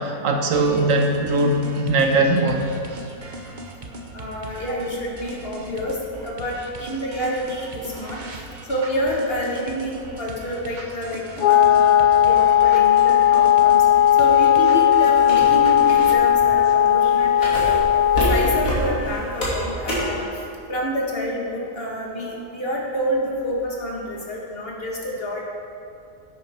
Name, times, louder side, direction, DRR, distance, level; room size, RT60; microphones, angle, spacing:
voice 1, 0.0-2.7, right 2 dB, 60° right, 3 dB, 1.3 m, -20 dB
sound 1, 0.5-16.1, right 2 dB, 40° right, 0.9 m, -38 dB
voice 2, 4.1-8.2 8.7-13.8 14.2-17.8 18.1-20.3 20.7-25.4, equal, 40° left, -2 dB, 1.8 m, -28 dB
Wind instrument woodwind instrument, 11.4-18.8, left 10 dB, 80° left, 1.1 m, -16 dB
sound 2, 15.2-20.2, equal, 60° left, 3.1 m, -27 dB
11.0 x 8.7 x 4.4 m, 2.6 s
omnidirectional pair, 1.6 m